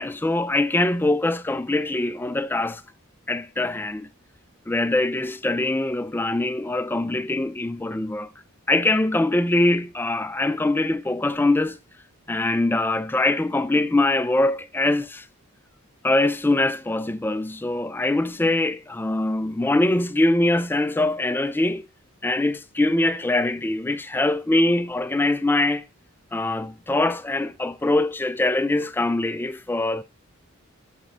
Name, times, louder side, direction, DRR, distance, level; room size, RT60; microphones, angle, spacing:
voice 1, 0.0-2.8 3.3-4.1 4.7-8.3 8.7-11.8 12.3-15.3 16.0-21.8 22.2-25.8 26.3-30.0, left 2 dB, 10° left, 0.3 m, -23 dB
7.2 x 4.5 x 5.5 m
head